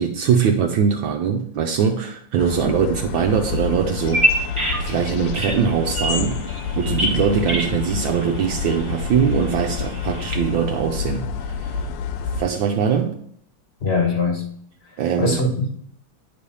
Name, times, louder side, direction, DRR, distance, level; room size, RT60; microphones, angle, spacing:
voice 1, 0.0-4.2 4.8-6.4 6.8-11.8 12.4-13.2 15.0-15.3, right 7 dB, 75° right, 3 dB, 1.4 m, -22 dB
sound 1, 2.4-12.4, left 6 dB, 85° left, 1.5 m, -28 dB
Bird vocalization bird call bird song, 4.0-10.4, equal, 20° right, 1.1 m, -27 dB
voice 2, 13.8-14.4 14.8-15.7, left 3 dB, 35° left, 2 dB, 1.1 m, -22 dB
9.9 x 3.4 x 6.9 m, 0.64 s
omnidirectional pair, 2.3 m